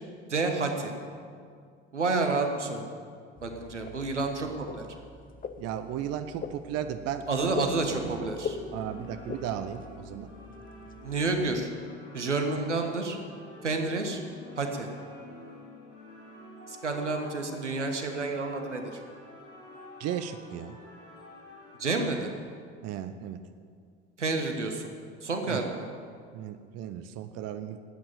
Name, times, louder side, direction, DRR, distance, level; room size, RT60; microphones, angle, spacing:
voice 1, 0.3-0.9 1.9-2.9 3.4-4.8 7.3-8.6 11.0-11.7 12.1-13.2 13.6-14.2 14.6-14.9 16.7-19.0 21.8-22.3 24.2-24.9 25.2-25.9, right 3 dB, 90° right, 4 dB, 1.3 m, -29 dB
sound 1, 3.4-11.6, left 5 dB, 25° left, 0.9 m, -42 dB
voice 2, 5.6-7.5 7.9-8.2 8.7-10.3 20.0-20.8 22.8-23.4 25.5-25.6 26.3-27.8, right 10 dB, 45° right, 10 dB, 0.8 m, -35 dB
sound 2, 8.2-21.9, left 2 dB, 75° left, 4.0 m, -48 dB
13.0 x 8.8 x 8.8 m, 2.2 s
figure-of-eight pair, 65°, 35 cm